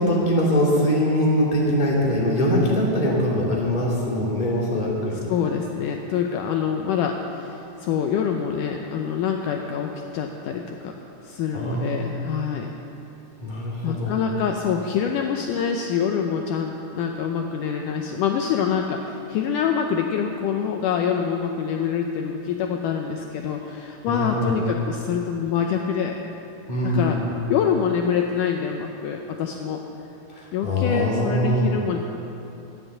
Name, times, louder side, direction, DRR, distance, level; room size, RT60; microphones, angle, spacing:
voice 1, 0.0-5.2 11.5-12.2 13.4-14.1 24.1-24.5 26.7-27.2 30.3-31.7, equal, 15° left, -4 dB, 2.2 m, -22 dB
voice 2, 5.3-10.9 11.2-12.7 13.8-26.2 26.8-27.2 27.5-29.8 30.5-32.0, left 7 dB, 75° left, 3 dB, 2.1 m, -25 dB
13.0 x 10.0 x 7.5 m, 2.8 s
omnidirectional pair, 4.0 m